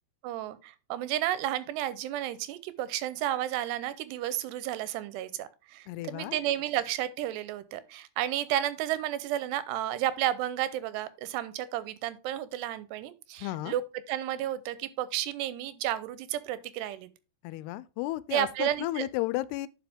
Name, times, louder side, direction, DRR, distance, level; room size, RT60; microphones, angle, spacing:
voice 1, 0.2-13.8 14.1-17.1 18.3-19.1, right 12 dB, 85° right, 2.9 m, -32 dB
voice 2, 5.9-6.4 13.4-13.7 17.4-19.7, left 17 dB, 85° left, 2.6 m, -33 dB
10.5 x 5.2 x 3.5 m
omnidirectional pair, 4.8 m